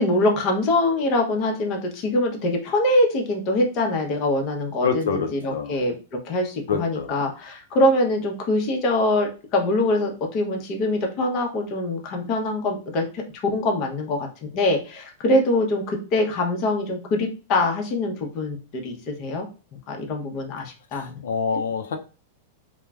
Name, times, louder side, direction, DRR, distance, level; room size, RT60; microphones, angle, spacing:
voice 1, 0.0-5.0 5.3-5.9 6.3-13.2 13.5-14.3 14.5-19.5 19.9-21.2, left 1 dB, 40° left, 2 dB, 0.7 m, -23 dB
voice 2, 4.8-5.8 6.7-7.1 20.9-22.0, left 6 dB, 85° left, 6 dB, 0.4 m, -26 dB
3.0 x 2.1 x 2.3 m, 0.34 s
hypercardioid pair, 135°, 0 cm